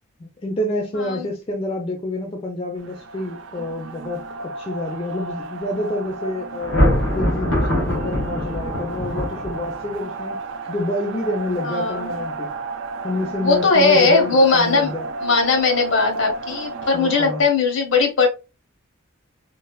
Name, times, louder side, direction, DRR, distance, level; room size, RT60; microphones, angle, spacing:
voice 1, 0.2-6.8 7.1-10.4 10.7-12.5 13.0-15.1 16.9-17.4, left 1 dB, 30° left, 0.4 m, -28 dB
voice 2, 1.0-1.3 11.6-12.1 13.4-14.9 15.2-18.3, left 3 dB, 65° left, 0.8 m, -18 dB
sound 1, 2.8-17.4, right 2 dB, 60° right, 0.3 m, -32 dB
Thunder, 6.6-9.9, left 1 dB, 80° left, 1.0 m, -22 dB
3.1 x 2.0 x 2.2 m
head